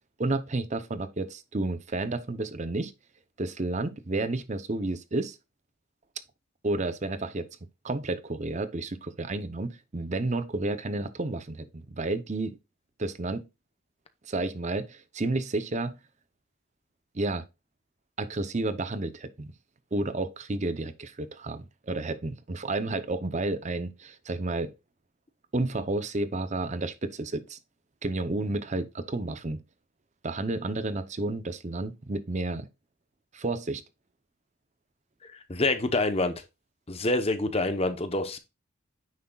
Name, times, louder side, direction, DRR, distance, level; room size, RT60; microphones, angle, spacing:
voice 1, 0.2-2.9 3.4-5.4 6.6-7.5 7.8-12.6 13.0-13.4 14.2-16.0 17.1-17.5 18.2-19.5 19.9-24.7 25.5-27.6 28.0-29.6 30.2-32.7 33.3-33.8, right 2 dB, 35° right, 0.7 m, -31 dB
voice 2, 35.2-36.4 36.9-38.4, left 2 dB, 30° left, 0.9 m, -27 dB
9.4 x 6.4 x 2.3 m
head